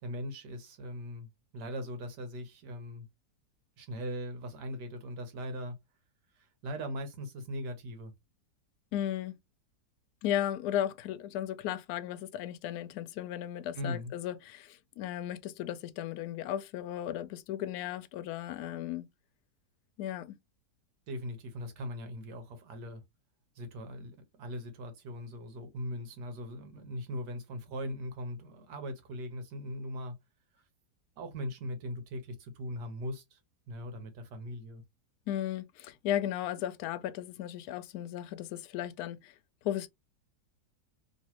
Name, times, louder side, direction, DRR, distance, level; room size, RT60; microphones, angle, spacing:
voice 1, 0.0-3.0 3.8-5.8 6.4-8.1 13.7-14.1 21.1-23.0 23.6-30.1 31.2-33.4 33.7-34.8, equal, 75° right, 1.6 m, -40 dB
voice 2, 8.9-9.3 10.2-19.1 20.0-20.4 35.3-39.3 39.6-39.9, left 11 dB, 75° left, 1.0 m, -35 dB
3.1 x 3.0 x 2.9 m
omnidirectional pair, 1.8 m